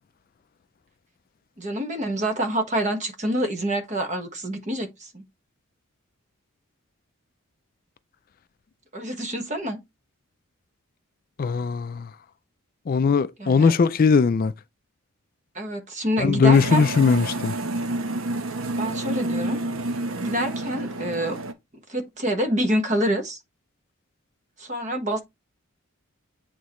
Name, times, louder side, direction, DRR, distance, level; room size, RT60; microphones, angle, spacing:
voice 1, 1.6-5.2 8.9-9.8 13.4-13.7 15.5-16.8 18.8-19.6 20.2-21.4 21.9-23.4 24.6-25.2, right 1 dB, 35° right, 1.2 m, -27 dB
voice 2, 11.4-12.1 12.9-14.5 16.2-17.5, left 5 dB, 40° left, 0.3 m, -19 dB
sound 1, 16.5-21.5, right 2 dB, 75° right, 0.9 m, -29 dB
8.3 x 4.0 x 3.0 m
head